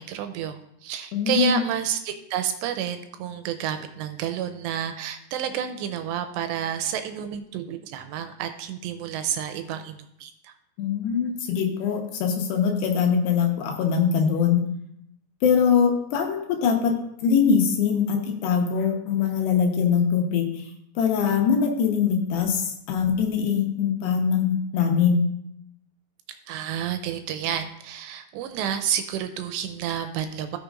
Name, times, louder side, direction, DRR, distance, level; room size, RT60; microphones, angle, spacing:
voice 1, 0.0-10.5 26.5-30.6, right 9 dB, 85° right, 8 dB, 2.7 m, -30 dB
voice 2, 1.1-1.6 10.8-14.6 15.4-16.9 17.2-20.7 21.0-25.2, left 7 dB, 75° left, 2 dB, 3.1 m, -22 dB
17.0 x 6.2 x 2.5 m, 0.76 s
omnidirectional pair, 5.1 m